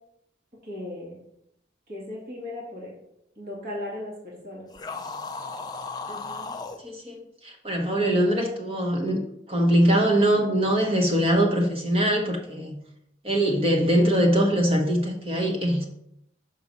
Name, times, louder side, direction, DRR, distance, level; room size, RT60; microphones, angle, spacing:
voice 1, 0.6-1.2 1.9-2.9 3.4-4.7, left 1 dB, 50° right, -4 dB, 2.2 m, -36 dB
sound 1, 4.7-6.8, left 4 dB, 20° left, 0.5 m, -35 dB
voice 2, 6.1-6.5 6.8-9.2 9.5-12.8 13.2-15.9, equal, 30° right, 2 dB, 1.2 m, -22 dB
6.2 x 4.6 x 5.5 m, 0.77 s
head